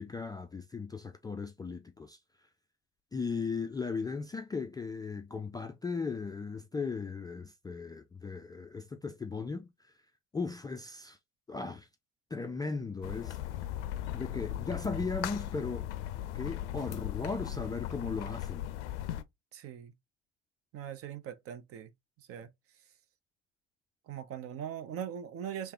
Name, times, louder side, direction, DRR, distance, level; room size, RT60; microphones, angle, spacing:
voice 1, 0.0-2.2 3.1-9.7 10.3-11.2 11.5-11.9 12.3-13.4 14.1-15.9 16.3-18.7, left 4 dB, 10° left, 0.3 m, -37 dB
sound 1, 13.0-19.2, left 12 dB, 65° left, 0.5 m, -37 dB
voice 2, 19.5-19.9 20.7-21.9 22.2-22.5 24.1-25.7, right 9 dB, 40° right, 0.6 m, -41 dB
3.3 x 3.1 x 2.7 m
figure-of-eight pair, 55°, 38 cm